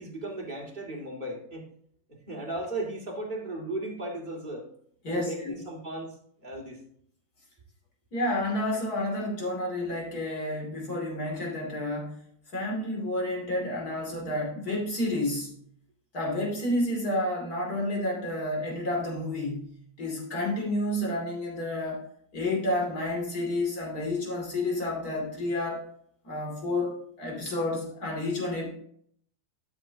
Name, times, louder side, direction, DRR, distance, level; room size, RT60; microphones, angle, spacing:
voice 1, 0.0-1.7 2.3-4.7 5.0-6.1 6.4-6.8, right 2 dB, 25° right, -2 dB, 2.4 m, -36 dB
voice 2, 5.0-5.5 8.1-12.2 12.5-15.6 16.1-22.0 22.3-25.8 26.2-28.7, left 1 dB, 50° left, -2 dB, 3.2 m, -30 dB
12.5 x 7.1 x 2.8 m, 0.66 s
omnidirectional pair, 2.1 m